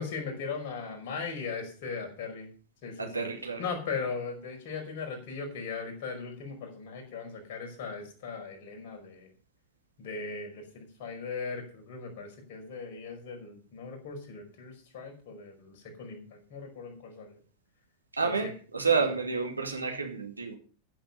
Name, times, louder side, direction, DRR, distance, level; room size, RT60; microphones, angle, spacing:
voice 1, 0.0-2.5 2.8-3.3 3.6-9.3 10.0-17.4 18.2-18.5 18.9-19.1, left 5 dB, 50° left, 5.3 m, -38 dB
voice 2, 3.0-3.6 18.1-20.6, right 4 dB, 80° right, 2.5 m, -29 dB
14.5 x 7.6 x 6.7 m
figure-of-eight pair, 90°, 0 cm